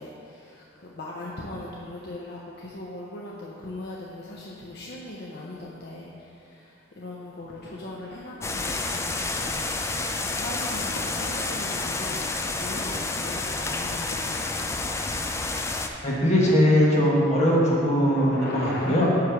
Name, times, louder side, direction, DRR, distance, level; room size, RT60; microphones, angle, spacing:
voice 1, 0.0-9.9 10.2-14.8 18.0-19.1, left 1 dB, 60° left, -4 dB, 0.7 m, -39 dB
sound 1, 8.4-15.9, left 3 dB, 15° left, 0.3 m, -29 dB
voice 2, 16.0-19.1, equal, 40° left, -5 dB, 1.4 m, -20 dB
9.4 x 3.3 x 5.9 m, 2.6 s
head